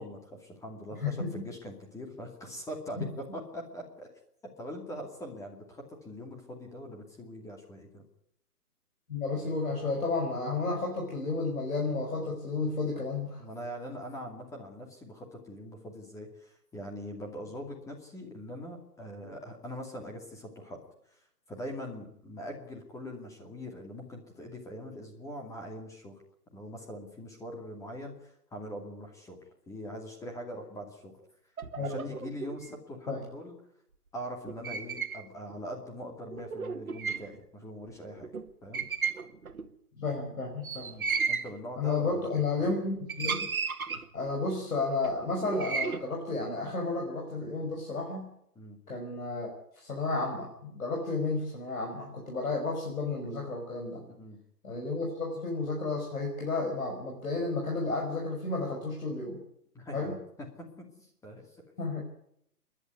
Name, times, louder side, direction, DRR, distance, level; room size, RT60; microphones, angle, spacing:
voice 1, 0.0-4.1 4.6-8.0 13.4-20.8 21.1-21.2 21.5-26.2 26.5-29.4 29.7-31.2 31.8-33.6 34.1-38.3 38.6-38.8 40.8-42.4 48.6-48.8 54.1-54.4 59.7-60.2 60.6-61.5, equal, 5° left, 2 dB, 2.5 m, -42 dB
voice 2, 1.0-1.5 3.0-3.4 9.1-13.4 31.8-31.9 33.1-33.2 40.0-40.9 41.8-43.5 44.1-48.3 48.9-54.0 54.6-59.4 59.9-60.2 61.8-62.0, left 3 dB, 60° left, 0 dB, 5.8 m, -32 dB
Metal Door Squeaks, 31.6-32.7 34.5-35.2 35.5-35.6 36.3-37.4 37.9-38.0 38.2-38.5 38.7-39.7 40.6-41.5 42.3-42.7 43.1-44.3 45.0-46.0, right 5 dB, 65° right, 2.0 m, -34 dB
28.0 x 11.0 x 9.5 m, 0.72 s
figure-of-eight pair, 135°, 46 cm